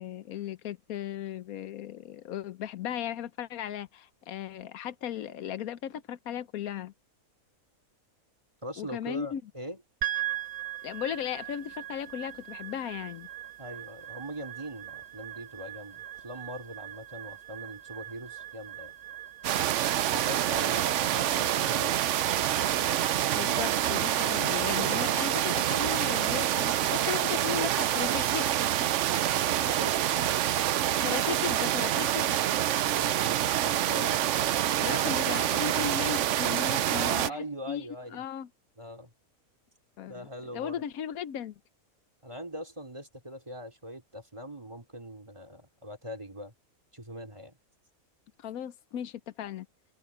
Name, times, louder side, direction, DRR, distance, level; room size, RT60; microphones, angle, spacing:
voice 1, 0.0-6.9 8.8-9.4 10.8-13.3 23.3-28.5 31.0-32.4 34.8-37.9 38.1-38.5 40.0-40.3 40.5-41.5 48.4-49.7, left 9 dB, 80° left, 1.2 m, -36 dB
voice 2, 8.6-9.8 13.6-18.9 20.1-23.0 29.6-30.0 33.0-34.2 36.9-38.2 38.8-39.1 40.1-40.8 42.2-46.5 46.9-47.6, equal, 20° right, 3.5 m, -41 dB
sound 1, 10.0-24.4, right 13 dB, 45° right, 1.2 m, -41 dB
sound 2, 19.4-37.3, right 12 dB, 65° right, 0.9 m, -27 dB
omnidirectional pair, 1.5 m